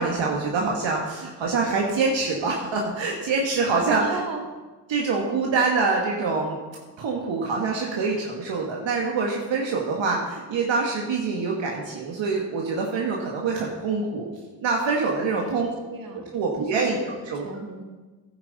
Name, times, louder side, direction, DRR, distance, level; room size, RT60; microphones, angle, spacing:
voice 1, 0.0-4.2 4.9-6.6 7.0-14.3 14.6-15.7 16.3-17.0 17.3-17.4, right 4 dB, 65° right, -1 dB, 1.6 m, -25 dB
voice 2, 4.0-4.4 15.3-17.8, right 3 dB, 45° right, 2 dB, 2.2 m, -36 dB
11.5 x 8.9 x 4.1 m, 1.3 s
supercardioid pair, 65°, 48 cm